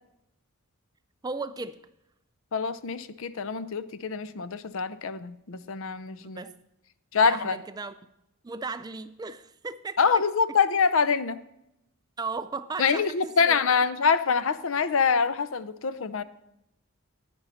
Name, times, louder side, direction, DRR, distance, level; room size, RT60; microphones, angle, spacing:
voice 1, 1.2-1.7 6.2-6.5 7.2-7.9 8.4-10.2 12.2-13.8, right 4 dB, 20° right, 12 dB, 0.3 m, -36 dB
voice 2, 2.5-6.5 7.1-7.6 10.0-11.4 12.8-16.2, left 5 dB, 60° left, 14 dB, 0.5 m, -25 dB
10.5 x 9.7 x 4.2 m, 0.83 s
head